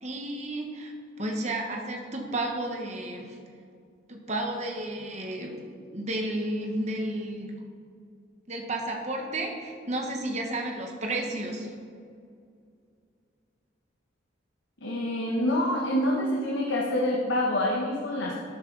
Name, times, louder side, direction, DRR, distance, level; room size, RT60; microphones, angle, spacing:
voice 1, 0.0-3.4 4.1-5.6 5.9-7.5 8.5-11.7, right 1 dB, 35° right, 1 dB, 1.4 m, -32 dB
voice 2, 14.8-18.3, left 1 dB, 70° left, -2 dB, 1.4 m, -26 dB
12.5 x 11.0 x 4.1 m, 2.3 s
head